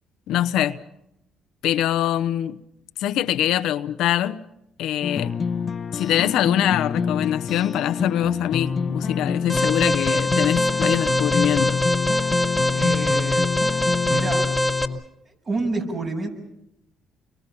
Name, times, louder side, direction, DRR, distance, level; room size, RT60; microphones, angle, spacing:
voice 1, 0.3-0.8 1.6-2.6 3.0-4.4 4.8-5.4 5.9-11.8, left 12 dB, 80° left, 0.9 m, -23 dB
sound 1, 5.0-15.0, left 5 dB, 45° left, 0.9 m, -26 dB
Alarm, 9.5-14.9, left 1 dB, 5° left, 2.0 m, -23 dB
voice 2, 12.7-13.5 14.0-14.5 15.3-16.3, right 3 dB, 45° right, 7.5 m, -28 dB
30.0 x 23.5 x 5.7 m
supercardioid pair, 80°, 0 cm